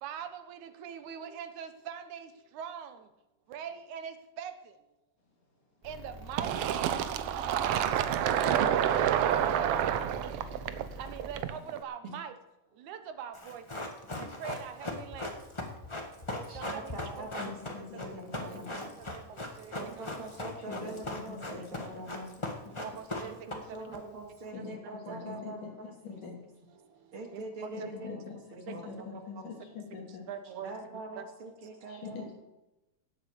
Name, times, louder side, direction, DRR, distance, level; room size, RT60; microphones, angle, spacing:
voice 1, 0.0-3.1 3.5-4.8 5.8-7.9 8.4-9.9 11.0-12.4 12.7-13.9 14.1-15.5 16.3-18.8 19.1-20.0 22.7-24.0 24.6-24.7 25.1-25.2 26.8-27.7 28.7-28.8 30.3-31.2, right 8 dB, 75° right, 9 dB, 2.4 m, -43 dB
sound 1, 5.8-11.4, right 1 dB, 25° right, 1.6 m, -45 dB
Fill (with liquid), 6.4-11.8, right 10 dB, 90° right, 1.3 m, -28 dB
Run, 13.3-24.0 24.2-24.3, left 2 dB, 35° left, 0.4 m, -39 dB
voice 2, 16.5-17.6 18.0-18.7 19.8-22.3 23.2-26.4 27.1-28.2 28.5-29.4 30.6-32.3, right 2 dB, 45° right, 2 dB, 2.5 m, -44 dB
voice 3, 17.4-18.8 20.7-22.3 24.5-25.7 26.0-26.4 27.7-28.4 28.6-30.3 31.9-32.3, left 6 dB, 80° left, 1 dB, 4.4 m, -44 dB
17.0 x 8.0 x 7.0 m, 0.98 s
omnidirectional pair, 3.6 m